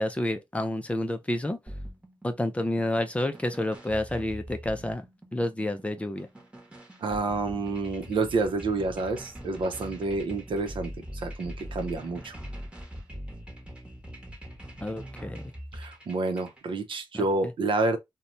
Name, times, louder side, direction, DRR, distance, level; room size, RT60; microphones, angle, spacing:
voice 1, 0.0-1.6 2.2-5.0 5.3-6.3 14.8-15.4 17.1-17.2, left 1 dB, 15° left, 0.5 m, -29 dB
sound 1, 1.7-16.6, equal, 15° right, 1.0 m, -42 dB
voice 2, 7.0-12.3 15.7-18.0, right 3 dB, 70° right, 0.7 m, -29 dB
3.0 x 2.2 x 2.5 m
wide cardioid pair, 95°, 9 cm